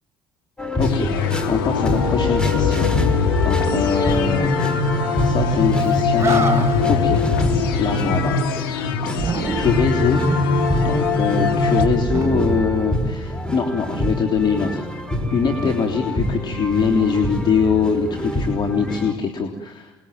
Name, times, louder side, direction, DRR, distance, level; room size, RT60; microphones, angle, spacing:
sound 1, 0.6-19.1, left 1 dB, 5° left, 5.4 m, -26 dB
voice 1, 0.7-4.5 5.2-7.2 7.7-8.4 9.6-10.3 10.8-14.9 15.3-20.0, left 6 dB, 40° left, 2 dB, 3.6 m, -23 dB
sound 2, 0.8-11.8, left 4 dB, 75° left, 2.7 m, -21 dB
Animal, 5.8-5.9 6.1-7.0 9.1-10.0 12.0-13.3, right 5 dB, 20° right, 4.7 m, -27 dB
28.5 x 22.0 x 9.4 m, 1.0 s
figure-of-eight pair, 55°, 12 cm